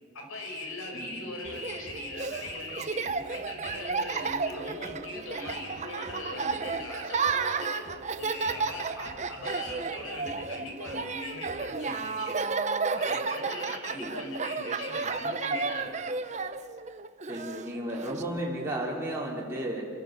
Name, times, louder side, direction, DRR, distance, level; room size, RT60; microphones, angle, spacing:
voice 1, 0.1-7.8 8.2-12.3 13.0-15.9, left 2 dB, 80° left, 1 dB, 4.9 m, -39 dB
voice 2, 0.9-1.4 14.0-14.1 17.2-19.8, right 1 dB, 10° right, -5 dB, 3.5 m, -34 dB
Laughter, 1.4-18.2, right 4 dB, 35° right, 0.6 m, -33 dB
27.5 x 13.5 x 7.5 m, 2.2 s
head